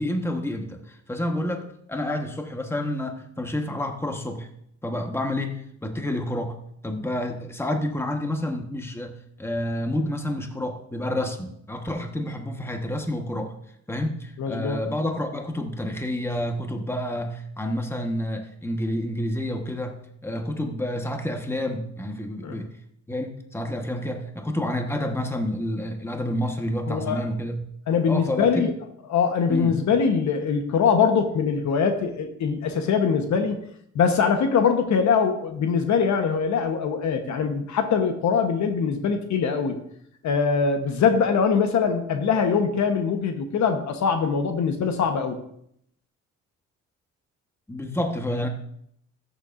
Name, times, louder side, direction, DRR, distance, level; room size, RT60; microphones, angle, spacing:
voice 1, 0.0-4.5 4.8-6.6 6.8-13.5 13.9-22.7 23.1-27.6 28.1-28.7 29.5-29.7 47.7-48.5, left 1 dB, 10° left, 4 dB, 1.2 m, -29 dB
voice 2, 14.4-14.8 22.4-22.6 26.9-27.2 27.9-28.7 29.1-33.6 33.9-39.8 40.2-45.4, left 6 dB, 70° left, 6 dB, 1.1 m, -22 dB
14.0 x 7.0 x 2.6 m, 0.71 s
cardioid pair, 90°, 30 cm